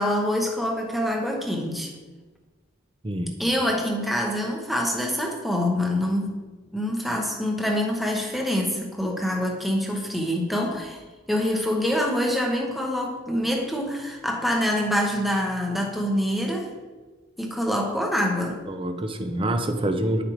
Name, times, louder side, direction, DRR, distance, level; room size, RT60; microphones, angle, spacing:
voice 1, 0.0-1.9 3.4-6.4 6.7-11.0 11.3-16.7 17.4-18.6, equal, ahead, 1 dB, 0.9 m, -25 dB
voice 2, 18.7-20.2, right 1 dB, 30° right, 6 dB, 0.6 m, -26 dB
9.4 x 5.0 x 3.1 m, 1.3 s
head